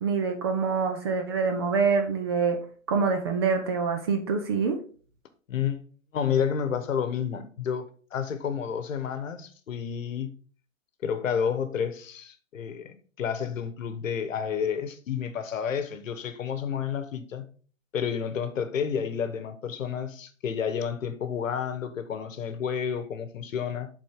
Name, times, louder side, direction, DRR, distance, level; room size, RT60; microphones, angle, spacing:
voice 1, 0.0-2.6 2.9-4.8, right 5 dB, 20° right, 0.4 m, -25 dB
voice 2, 5.5-5.8 6.1-10.3 11.0-17.5 17.9-23.9, left 7 dB, 70° left, 1.2 m, -30 dB
7.8 x 4.1 x 3.6 m
hypercardioid pair, 135°, 40 cm